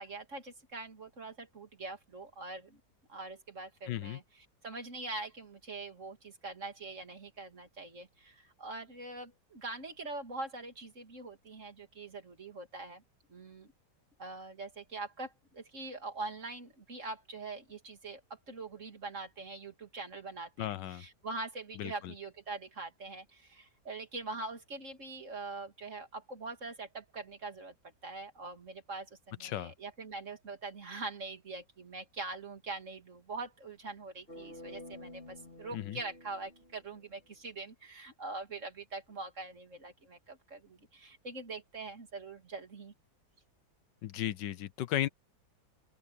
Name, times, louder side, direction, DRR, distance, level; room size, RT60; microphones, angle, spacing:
voice 1, 0.0-2.8 3.1-13.0 13.3-13.7 14.2-27.7 28.0-42.9, right 3 dB, 45° right, 2.9 m, -43 dB
voice 2, 3.9-4.2 20.6-21.0 21.8-22.1 29.4-29.7 35.7-36.0 44.0-45.1, left 13 dB, 80° left, 1.5 m, -35 dB
sound 1, 34.3-37.3, left 1 dB, 30° left, 5.0 m, -50 dB
open air
omnidirectional pair, 1.9 m